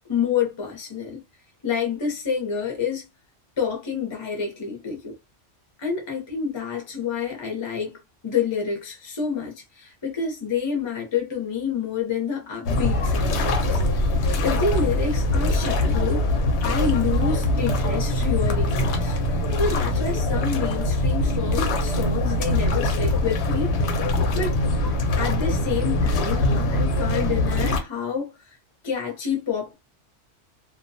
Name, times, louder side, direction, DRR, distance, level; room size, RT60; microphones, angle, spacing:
voice 1, 0.1-1.2 1.6-3.1 3.6-5.2 5.8-7.9 8.2-13.8 14.4-16.2 16.6-19.2 19.6-23.7 24.3-24.6 25.2-28.5 28.8-29.7, left 6 dB, 30° left, 0.6 m, -28 dB
sound 1, 12.6-27.8, left 1 dB, 70° left, 0.9 m, -23 dB
2.2 x 2.2 x 2.6 m
omnidirectional pair, 1.2 m